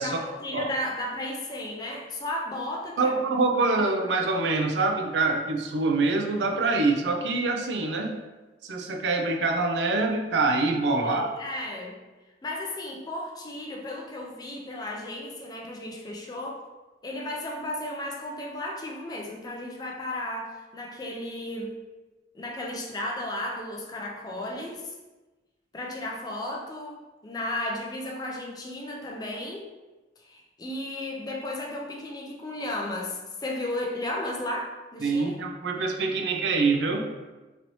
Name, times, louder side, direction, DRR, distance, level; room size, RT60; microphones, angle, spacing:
voice 1, 0.0-3.2 11.0-12.0 12.4-16.6 17.0-21.7 22.3-24.9 25.7-29.7 30.2-35.4, left 1 dB, 20° left, -1 dB, 0.4 m, -34 dB
voice 2, 3.0-8.2 8.6-11.3 35.0-37.1, right 3 dB, 80° right, 3 dB, 0.4 m, -25 dB
3.0 x 2.6 x 3.0 m, 1.2 s
head